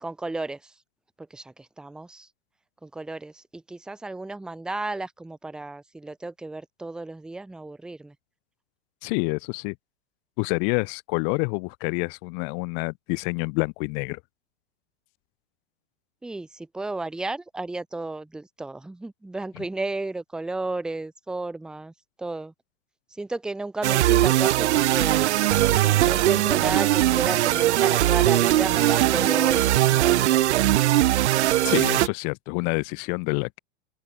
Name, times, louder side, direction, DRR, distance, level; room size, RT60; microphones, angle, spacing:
voice 1, 0.0-0.6 1.2-2.3 2.8-8.1 16.2-21.9 22.2-22.5 23.2-25.2 25.8-30.4, right 2 dB, ahead, 0.8 m, -33 dB
voice 2, 9.0-9.7 10.4-14.2 19.5-19.6 31.6-33.6, left 40 dB or more, 35° left, 0.9 m, -27 dB
sound 1, 23.8-32.1, right 14 dB, 90° right, 0.8 m, -20 dB
open air
supercardioid pair, 160°, 33 cm